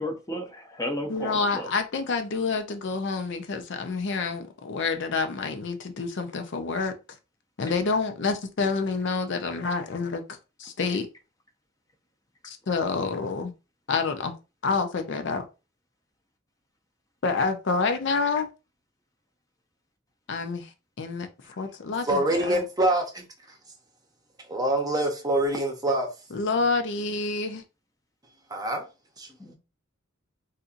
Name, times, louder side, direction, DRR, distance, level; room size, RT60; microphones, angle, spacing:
voice 1, 0.0-1.7 29.4-29.5, left 1 dB, 15° left, 0.6 m, -33 dB
voice 2, 1.1-6.9 7.6-11.1 12.4-13.5 13.9-14.3 14.6-15.4 17.2-18.5 20.3-20.7 21.0-21.3 21.6-22.6 26.3-27.6, left 4 dB, 60° left, 0.5 m, -28 dB
voice 3, 22.0-23.3 24.5-26.1 28.5-28.9 29.2-29.3, right 1 dB, 20° right, 0.7 m, -25 dB
4.1 x 2.5 x 2.5 m
head